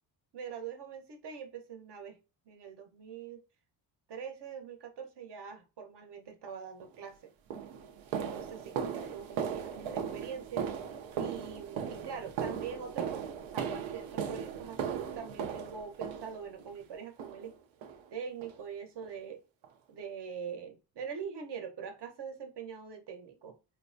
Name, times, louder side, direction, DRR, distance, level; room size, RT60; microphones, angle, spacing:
voice 1, 0.3-2.2 2.5-3.4 4.1-7.3 8.1-10.7 11.2-17.6 18.1-19.4 19.9-23.6, right 7 dB, 60° right, 0.9 m, -43 dB
sound 1, 6.8-7.0 7.5-16.7 17.2-17.5 17.8-18.0 18.4-18.6 19.0-19.1 19.6-19.7, right 7 dB, 90° right, 0.7 m, -37 dB
4.2 x 2.1 x 2.5 m
cardioid pair, 120°, 46 cm